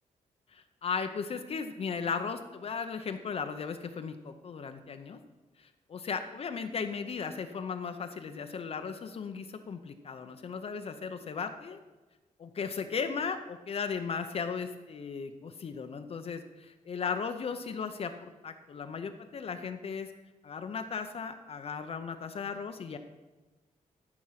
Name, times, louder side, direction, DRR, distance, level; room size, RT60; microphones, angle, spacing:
voice 1, 0.5-5.2 5.6-11.8 12.4-20.1 20.4-23.0, left 5 dB, 50° left, 7 dB, 0.7 m, -36 dB
14.5 x 5.9 x 5.8 m, 1.2 s
wide cardioid pair, 155°, 13 cm